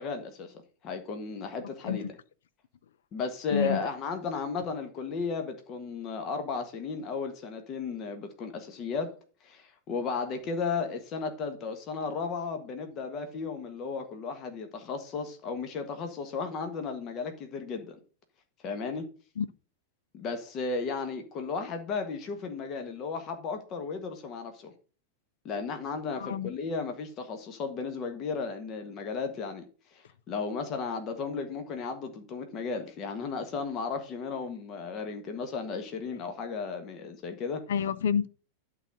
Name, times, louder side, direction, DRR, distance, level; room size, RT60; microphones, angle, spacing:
voice 1, 0.0-2.0 3.1-9.2 9.4-18.0 18.6-19.1 20.1-24.7 25.4-29.6 29.9-37.6, left 4 dB, 35° left, 1.5 m, -34 dB
voice 2, 3.5-3.9 19.4-19.5 26.2-26.5 37.7-38.3, left 7 dB, 60° left, 0.6 m, -28 dB
12.0 x 4.1 x 6.1 m
figure-of-eight pair, 90°, 0 cm